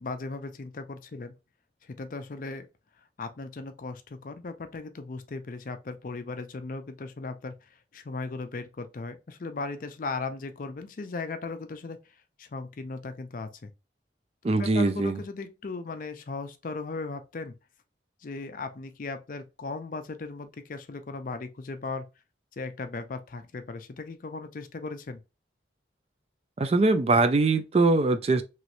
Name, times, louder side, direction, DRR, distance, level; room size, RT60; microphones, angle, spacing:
voice 1, 0.0-1.3 1.8-2.7 3.2-12.0 12.4-13.7 14.6-17.5 18.2-22.1 22.6-25.2, left 3 dB, 50° left, 0.5 m, -37 dB
voice 2, 14.4-15.2 26.6-28.4, right 3 dB, 35° right, 0.3 m, -22 dB
3.1 x 3.0 x 2.5 m
head